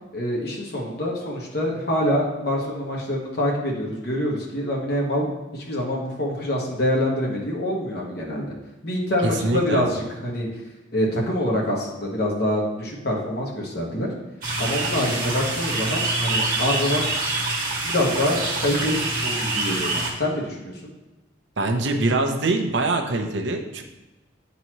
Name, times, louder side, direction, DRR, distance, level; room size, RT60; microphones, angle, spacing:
voice 1, 0.1-5.3 5.5-8.5 8.8-10.5 10.9-14.1 14.6-17.1 17.8-20.8, left 1 dB, 55° left, -3 dB, 1.5 m, -25 dB
voice 2, 9.2-9.8 21.6-23.8, right 2 dB, 70° right, 4 dB, 0.7 m, -23 dB
sound 1, 14.4-20.1, right 2 dB, 45° right, 1.6 m, -26 dB
9.3 x 4.1 x 3.0 m, 1.1 s
head